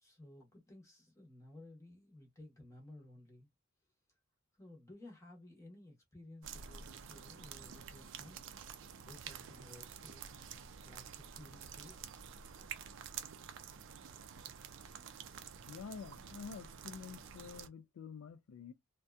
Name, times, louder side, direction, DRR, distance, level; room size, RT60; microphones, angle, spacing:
voice 1, 0.0-3.5 4.5-8.5 9.0-10.2 10.8-12.1, left 1 dB, 15° left, 0.7 m, -56 dB
sound 1, 6.4-17.7, right 7 dB, 55° right, 0.4 m, -49 dB
voice 2, 15.7-18.7, left 6 dB, 70° left, 0.3 m, -48 dB
2.6 x 2.1 x 2.2 m
head